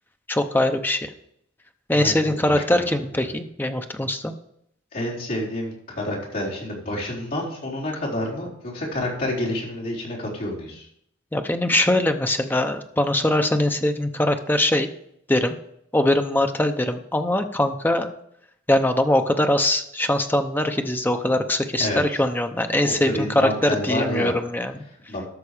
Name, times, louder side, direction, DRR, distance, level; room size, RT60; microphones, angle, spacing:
voice 1, 0.3-1.1 1.9-4.3 11.3-14.9 15.3-15.6 15.9-18.1 18.7-24.8, left 1 dB, 10° left, 7 dB, 0.7 m, -22 dB
voice 2, 1.9-2.9 4.9-10.9 21.8-22.2 22.8-24.4 25.1-25.2, left 1 dB, 45° left, -5 dB, 4.1 m, -29 dB
13.0 x 6.2 x 5.0 m, 0.73 s
head